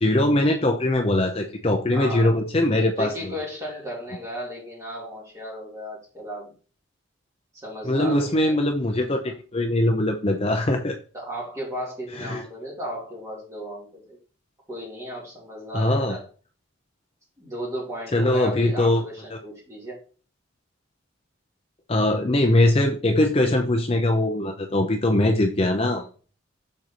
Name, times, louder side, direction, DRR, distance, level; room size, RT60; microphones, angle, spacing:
voice 1, 0.0-3.3 7.8-11.0 12.2-12.4 15.7-16.2 18.1-19.0 19.3-19.4 21.9-26.1, left 1 dB, 30° left, 3 dB, 0.6 m, -21 dB
voice 2, 1.9-2.4 2.7-6.5 7.5-8.6 11.1-14.2 14.7-16.3 17.4-20.0, equal, 15° right, -4 dB, 2.8 m, -35 dB
6.5 x 4.6 x 4.0 m, 0.38 s
head